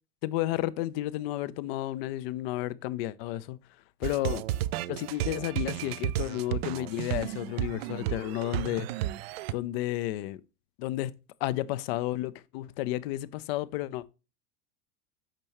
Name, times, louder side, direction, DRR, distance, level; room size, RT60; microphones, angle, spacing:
voice 1, 0.2-3.6 4.0-4.4 4.9-8.9 9.5-10.4 10.8-11.1 11.4-14.1, left 15 dB, 45° left, 0.6 m, -32 dB
sound 1, 4.0-9.5, right 13 dB, 45° right, 0.4 m, -33 dB
8.9 x 5.3 x 2.9 m
figure-of-eight pair, 90°, 44 cm